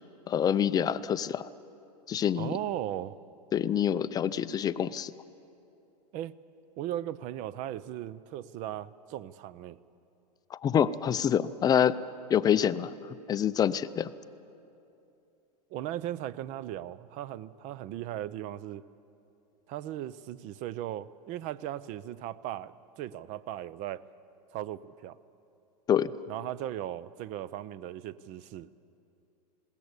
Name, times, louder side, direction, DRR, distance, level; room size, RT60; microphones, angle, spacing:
voice 1, 0.3-1.5 2.1-2.5 3.5-5.1 10.5-12.0 12.3-12.9 13.3-14.1 25.9-26.1, left 9 dB, 20° left, 14 dB, 0.4 m, -26 dB
voice 2, 2.4-3.2 6.1-6.3 6.8-9.8 15.7-18.8 19.7-24.0 24.5-25.2 26.3-28.7, right 12 dB, 35° right, 19 dB, 0.6 m, -37 dB
20.5 x 17.5 x 8.1 m, 2.7 s
hypercardioid pair, 125°, 21 cm